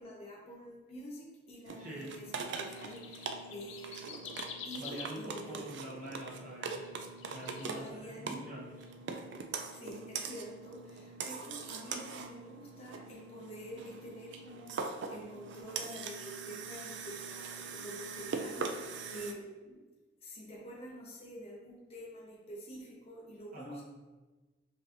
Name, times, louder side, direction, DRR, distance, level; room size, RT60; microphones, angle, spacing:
voice 1, 0.0-4.2 4.6-5.7 7.6-8.4 9.7-19.8 20.2-23.8, right 1 dB, 30° left, -4 dB, 0.7 m, -47 dB
sound 1, 1.7-19.3, right 4 dB, 65° right, 0.4 m, -42 dB
voice 2, 1.8-2.2 4.8-6.9 7.3-8.9 23.5-23.8, right 1 dB, 45° right, -4 dB, 0.9 m, -46 dB
sound 2, 2.6-6.3 6.8-7.9, left 6 dB, 80° left, 0.5 m, -47 dB
5.1 x 3.2 x 2.5 m, 1.2 s
head